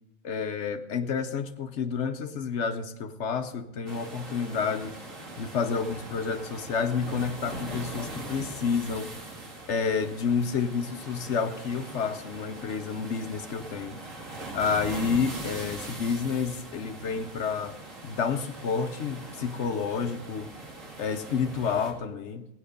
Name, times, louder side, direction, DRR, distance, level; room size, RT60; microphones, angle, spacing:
voice 1, 0.2-5.0 5.4-9.1 9.7-14.0 14.5-17.8 18.0-20.5 21.0-22.5, left 6 dB, 65° left, 8 dB, 1.1 m, -29 dB
sound 1, 3.9-21.9, right 2 dB, 90° right, 2.6 m, -41 dB
16.5 x 10.0 x 5.1 m, 0.90 s
omnidirectional pair, 1.3 m